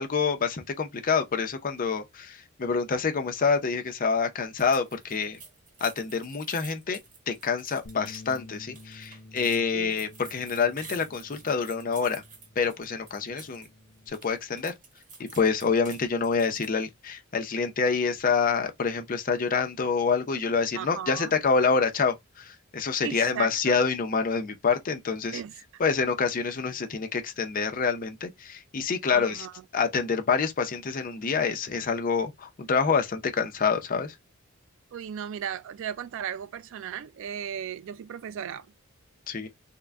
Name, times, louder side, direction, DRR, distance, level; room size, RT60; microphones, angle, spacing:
voice 1, 0.0-5.4 5.8-7.0 7.3-12.2 12.6-13.7 14.1-14.7 15.2-25.4 25.8-29.5 29.7-34.2 39.3-39.5, left 5 dB, 40° left, 0.6 m, -27 dB
sound 1, 4.6-13.7 14.0-16.8, right 4 dB, 40° right, 1.1 m, -49 dB
Bass guitar, 7.8-14.1, left 2 dB, 90° left, 0.7 m, -50 dB
voice 2, 20.8-21.3 23.0-23.8 25.3-25.5 29.1-29.5 34.9-38.7, right 8 dB, 65° right, 0.3 m, -36 dB
3.7 x 2.1 x 3.4 m
head